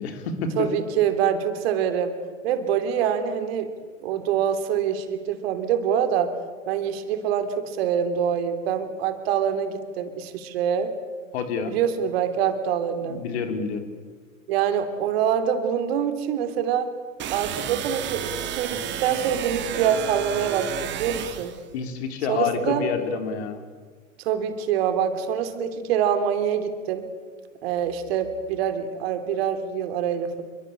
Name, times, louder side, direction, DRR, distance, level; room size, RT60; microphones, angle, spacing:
voice 1, 0.0-0.7 11.3-11.8 13.1-13.9 21.7-23.6, left 6 dB, 50° left, 6 dB, 4.0 m, -28 dB
voice 2, 0.6-2.1 2.4-3.7 4.0-6.3 6.7-10.9 11.7-13.2 14.5-16.9 17.3-21.5 22.3-22.8 24.2-27.0 27.6-30.4, right 8 dB, 50° right, 8 dB, 3.0 m, -25 dB
sound 1, 17.2-21.6, right 9 dB, 25° right, 2.3 m, -31 dB
28.0 x 24.0 x 8.9 m, 1.5 s
figure-of-eight pair, 95°, 40 cm